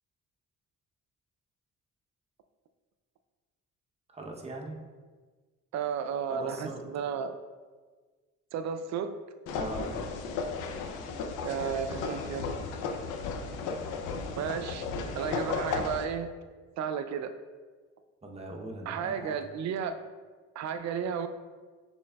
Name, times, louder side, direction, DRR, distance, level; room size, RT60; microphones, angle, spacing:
voice 1, 4.1-4.8 6.3-6.8 9.5-9.9 18.2-19.4, right 2 dB, 20° right, 0 dB, 0.8 m, -40 dB
voice 2, 5.7-7.3 8.5-9.1 11.4-12.4 14.4-14.9 15.2-16.3 16.8-17.3 18.9-20.0 20.6-21.3, right 7 dB, 65° right, 9 dB, 0.4 m, -33 dB
sound 1, 9.5-16.0, left 4 dB, 85° left, 0.5 m, -34 dB
6.0 x 3.5 x 2.3 m, 1.4 s
cardioid pair, 90°, 30 cm